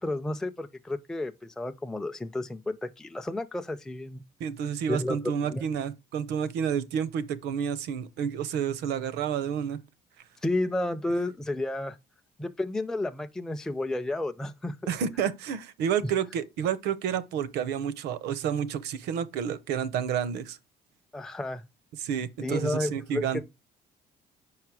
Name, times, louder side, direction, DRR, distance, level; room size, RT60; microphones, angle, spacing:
voice 1, 0.0-4.2 4.9-5.7 10.4-12.0 12.4-14.8 16.0-16.1 21.1-21.6 22.4-23.4, left 2 dB, 5° left, 0.4 m, -31 dB
voice 2, 4.4-9.8 14.9-20.6 22.0-23.4, right 8 dB, 80° right, 0.7 m, -30 dB
5.5 x 4.8 x 4.7 m
cardioid pair, 110°, 17 cm